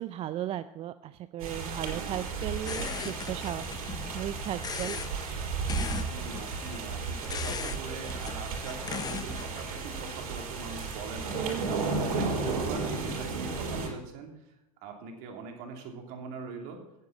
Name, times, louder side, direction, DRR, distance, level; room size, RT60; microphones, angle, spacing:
voice 1, 0.0-3.6 4.1-5.6 11.3-11.9, right 12 dB, 30° right, 12 dB, 0.4 m, -36 dB
sound 1, 1.4-13.9, right 4 dB, 70° right, 5.1 m, -34 dB
voice 2, 1.8-2.3 5.8-11.4 11.7-14.3 14.8-16.8, right 5 dB, 55° right, 3 dB, 2.8 m, -42 dB
sound 2, 2.7-4.2 4.4-5.1 5.6-6.8 7.2-7.8 8.1-9.7, left 6 dB, 20° left, 0.6 m, -38 dB
9.8 x 7.5 x 7.2 m, 0.87 s
hypercardioid pair, 95°, 19 cm